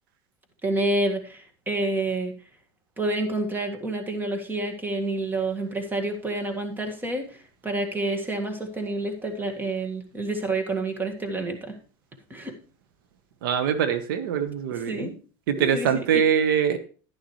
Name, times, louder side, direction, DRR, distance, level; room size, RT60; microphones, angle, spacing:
voice 1, 0.6-2.3 3.0-11.8 12.3-12.5 14.9-15.1 15.6-16.2, right 2 dB, 15° right, 5 dB, 1.9 m, -28 dB
voice 2, 13.4-15.1 15.5-16.8, right 8 dB, 85° right, 10 dB, 1.2 m, -23 dB
11.5 x 10.5 x 3.2 m, 0.37 s
supercardioid pair, 120°, 11 cm